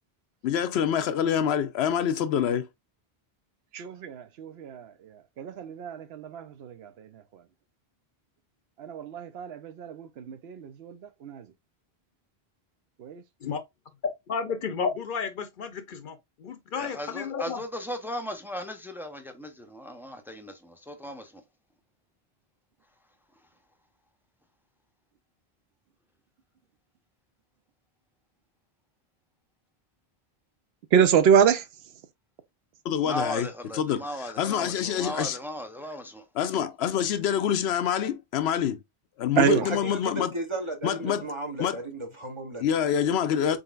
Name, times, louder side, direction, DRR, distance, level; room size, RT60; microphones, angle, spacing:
voice 1, 0.4-2.7 32.8-33.5 33.7-35.4 36.4-38.8 39.2-40.3 40.8-41.3 41.6-41.8 42.6-43.6, left 8 dB, 85° left, 0.8 m, -26 dB
voice 2, 3.7-4.9 5.4-6.9 8.8-11.0 11.2-11.4 13.0-13.2 30.9-31.6 39.4-39.6, right 8 dB, 75° right, 0.8 m, -25 dB
voice 3, 14.3-17.6, left 6 dB, 60° left, 0.8 m, -32 dB
voice 4, 16.7-21.4 33.0-36.2, left 1 dB, 5° right, 0.5 m, -37 dB
voice 5, 39.6-42.7 43.4-43.6, right 1 dB, 30° right, 0.8 m, -35 dB
4.2 x 3.9 x 2.4 m
omnidirectional pair, 1.1 m